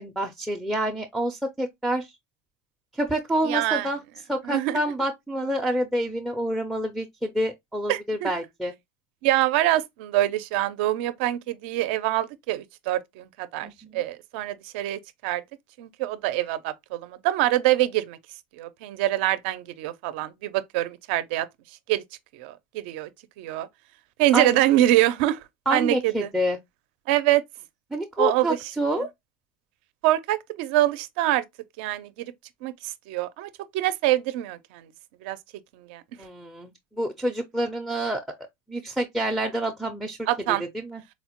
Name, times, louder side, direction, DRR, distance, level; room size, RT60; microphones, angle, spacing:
voice 1, 0.0-2.1 2.9-4.0 4.3-8.7 13.6-14.0 24.3-24.6 25.7-26.6 27.9-29.1 36.2-36.7 37.0-38.2 38.7-40.2 40.7-41.0, right 1 dB, ahead, 0.4 m, -27 dB
voice 2, 3.4-3.9 4.4-4.8 7.9-8.3 9.2-15.4 15.8-18.2 18.6-21.5 21.9-22.0 22.3-23.1 23.4-23.7 24.2-25.4 25.7-26.3 27.1-27.4 28.2-28.7 29.0-29.1 30.0-31.4 31.8-32.3 32.6-34.9 35.2-35.4 35.8-36.0 40.3-40.6, right 14 dB, 70° right, 0.4 m, -25 dB
4.1 x 2.1 x 2.9 m
supercardioid pair, 140°, 6 cm